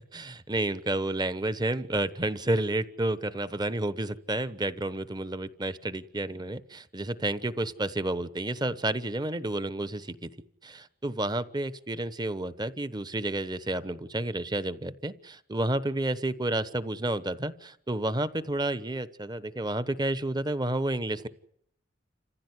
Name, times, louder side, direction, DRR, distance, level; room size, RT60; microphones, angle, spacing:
voice 1, 0.1-10.3 10.6-21.3, right 2 dB, 20° right, 14 dB, 1.0 m, -30 dB
28.5 x 15.5 x 9.7 m, 0.73 s
head